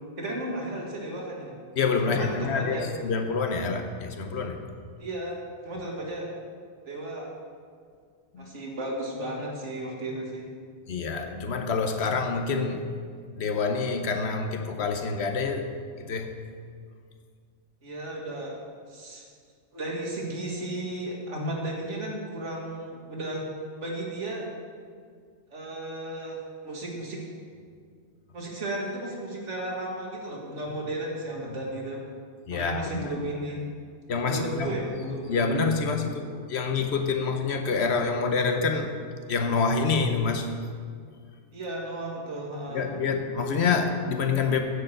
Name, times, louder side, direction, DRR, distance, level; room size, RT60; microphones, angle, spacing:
voice 1, 0.2-1.5 2.0-2.9 5.0-5.4 5.7-6.3 6.8-7.3 8.4-10.4 17.8-18.6 18.9-19.2 19.7-23.5 23.8-24.5 25.5-27.2 28.3-32.0 32.5-33.6 34.2-35.5 41.5-42.9, right 1 dB, 90° right, -2 dB, 2.0 m, -34 dB
voice 2, 1.8-4.6 8.3-8.4 10.9-12.9 13.4-15.7 16.0-16.3 32.5-33.1 34.1-39.0 39.3-40.5 42.7-44.6, left 4 dB, 65° left, 5 dB, 1.0 m, -27 dB
9.5 x 4.7 x 7.6 m, 2.1 s
omnidirectional pair, 1.2 m